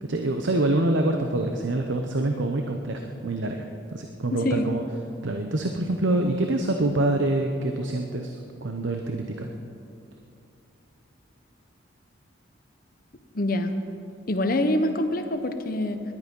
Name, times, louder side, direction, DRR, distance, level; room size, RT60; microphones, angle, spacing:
voice 1, 0.0-4.8 5.2-9.5, right 2 dB, 70° right, 4 dB, 0.8 m, -26 dB
voice 2, 13.3-13.7 14.3-16.0, left 1 dB, 45° left, 8 dB, 0.9 m, -25 dB
19.0 x 11.0 x 5.4 m, 2.7 s
head